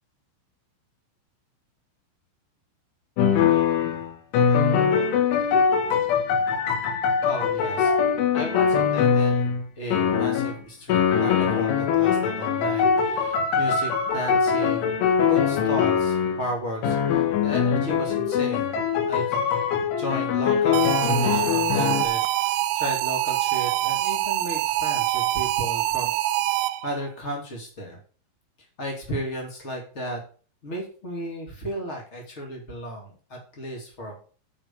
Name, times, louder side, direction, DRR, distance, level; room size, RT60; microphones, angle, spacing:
sound 1, 3.2-9.7 9.9-10.6 10.9-16.5 16.8-22.1, left 7 dB, 75° left, 3.7 m, -22 dB
voice 1, 7.2-7.9 8.3-9.4 9.8-15.0 15.3-18.7 19.1-26.2 26.5-28.0 28.8-30.2 30.6-34.1, equal, 55° left, 0 dB, 0.7 m, -34 dB
sound 2, 20.7-27.0, right 15 dB, 85° right, 3.2 m, -25 dB
9.4 x 5.2 x 6.9 m, 0.41 s
omnidirectional pair, 5.9 m